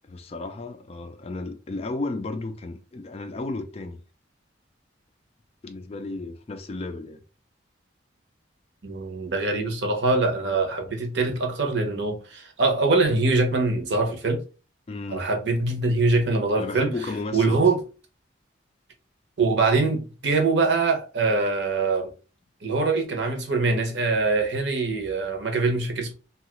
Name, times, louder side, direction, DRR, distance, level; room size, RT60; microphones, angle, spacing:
voice 1, 0.0-4.0 5.6-7.2 14.9-15.3 16.5-17.7, left 2 dB, 30° left, 0.3 m, -33 dB
voice 2, 8.8-14.4 15.1-16.9 17.3-17.8 19.4-22.1 22.6-26.1, right 3 dB, 65° right, 0.7 m, -23 dB
2.8 x 2.3 x 2.9 m
head